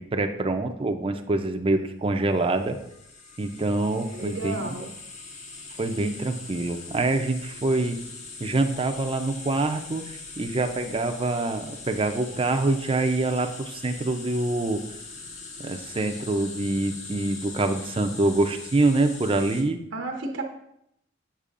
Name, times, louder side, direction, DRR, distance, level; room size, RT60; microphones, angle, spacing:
voice 1, 0.0-2.8 3.4-4.8 5.8-8.0 8.4-14.8 15.6-19.8, right 2 dB, 30° right, 6 dB, 0.5 m, -25 dB
sound 1, 2.4-19.6, left 3 dB, 40° left, 0.7 m, -41 dB
voice 2, 4.1-4.9 19.9-20.4, right 2 dB, 75° right, 3 dB, 0.8 m, -32 dB
7.3 x 6.8 x 2.5 m, 0.78 s
head